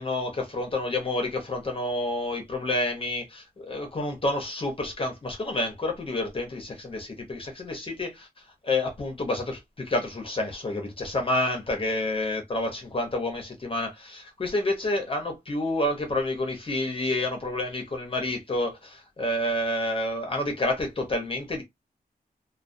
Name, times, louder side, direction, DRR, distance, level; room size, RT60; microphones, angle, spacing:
voice 1, 0.0-8.3 8.6-21.6, left 1 dB, 35° left, 0.7 m, -29 dB
2.2 x 2.2 x 2.5 m
wide cardioid pair, 160°, 16 cm